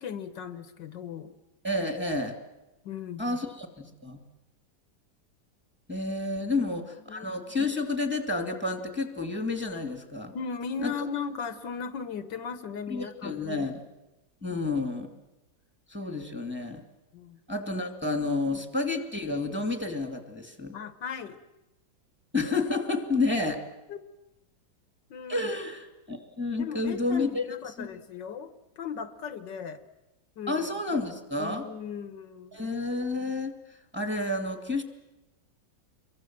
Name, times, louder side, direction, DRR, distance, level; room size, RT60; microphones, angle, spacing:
voice 1, 0.0-1.3 2.8-3.4 6.5-6.7 7.1-7.3 10.3-13.7 14.5-14.6 17.1-17.4 18.4-18.6 20.7-21.4 23.9-24.0 25.1-25.5 26.6-29.8 30.4-30.7 31.4-32.7, left 6 dB, 70° left, 11 dB, 1.7 m, -37 dB
voice 2, 1.6-2.4 3.2-4.2 5.9-10.4 10.8-11.0 12.9-13.8 14.4-15.1 15.9-16.8 17.5-20.8 22.3-23.6 25.3-27.4 27.8-27.9 30.5-31.7 32.5-33.6 33.9-34.8, left 3 dB, 5° right, 5 dB, 2.4 m, -30 dB
27.5 x 23.0 x 7.5 m, 0.99 s
omnidirectional pair, 2.0 m